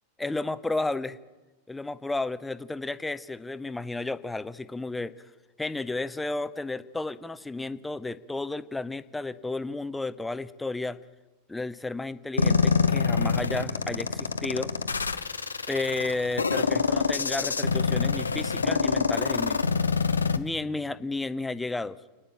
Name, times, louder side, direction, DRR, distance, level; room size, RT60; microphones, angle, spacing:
voice 1, 0.2-1.2 1.7-5.1 5.6-11.0 11.5-14.7 15.7-19.6 20.4-22.0, left 2 dB, 10° left, 15 dB, 0.7 m, -32 dB
sound 1, 12.4-20.4, left 5 dB, 75° left, 0.9 m, -25 dB
29.0 x 10.0 x 8.9 m, 1.2 s
figure-of-eight pair, 90°, 0 cm